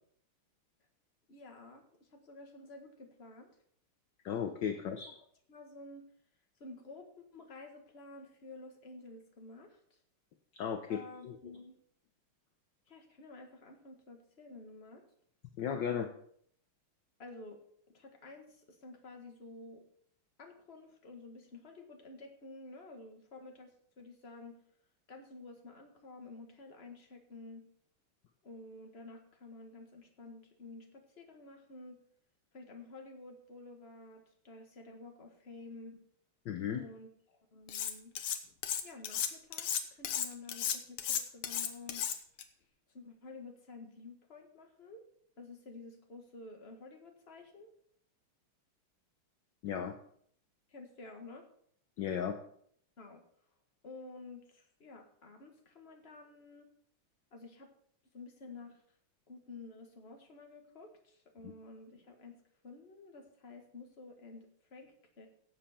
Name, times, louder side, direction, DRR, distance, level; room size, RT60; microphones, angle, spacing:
voice 1, 1.3-3.6 4.9-5.2 5.5-6.0 6.6-10.0 10.9-11.8 12.9-15.0 17.2-17.6 17.9-19.8 20.4-23.7 24.0-24.6 25.1-27.7 28.4-32.0 32.5-36.0 36.7-38.1 38.8-42.1 42.9-45.0 45.4-47.7 50.7-51.4 53.0-53.2 53.8-56.7 57.3-57.7 58.1-58.8 59.3-62.3 62.6-65.3, left 3 dB, 30° left, 3 dB, 1.7 m, -51 dB
voice 2, 4.2-5.1 10.5-11.4 15.6-16.1 36.4-36.8 49.6-49.9 52.0-52.4, left 8 dB, 65° left, 6 dB, 1.4 m, -35 dB
Cutlery silverware, 37.7-38.4 38.6-42.4, left 9 dB, 80° left, 1.9 m, -34 dB
17.0 x 7.4 x 4.4 m, 0.65 s
omnidirectional pair, 2.4 m